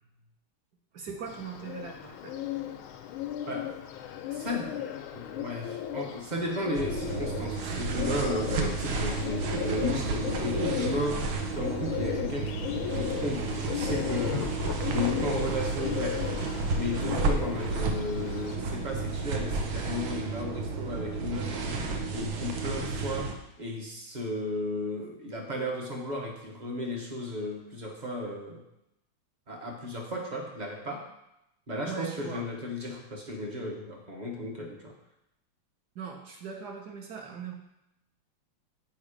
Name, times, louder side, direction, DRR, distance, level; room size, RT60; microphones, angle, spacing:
voice 1, 0.9-2.3 31.8-32.5 35.9-37.5, right 6 dB, 60° right, 1 dB, 1.2 m, -40 dB
Bird, 1.3-18.6, left 11 dB, 90° left, 1.5 m, -36 dB
voice 2, 4.3-4.8 5.1-14.6 14.9-16.2 16.7-28.6 29.5-31.1 31.7-34.9, left 1 dB, 35° right, 0 dB, 0.7 m, -34 dB
sound 1, 6.7-23.3, right 3 dB, 75° right, 1.6 m, -32 dB
sound 2, 13.5-15.8 16.1-18.5, left 6 dB, 70° left, 0.7 m, -40 dB
7.3 x 4.8 x 5.0 m, 0.84 s
omnidirectional pair, 2.2 m